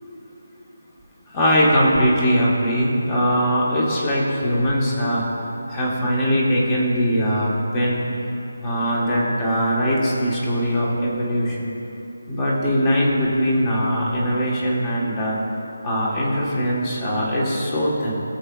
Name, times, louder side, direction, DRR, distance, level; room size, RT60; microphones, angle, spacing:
voice 1, 1.3-5.2 5.7-8.0 8.6-11.7 12.3-15.3 15.8-18.1, equal, 15° left, -4 dB, 1.1 m, -21 dB
17.0 x 7.2 x 2.3 m, 2.9 s
figure-of-eight pair, 175°, 0 cm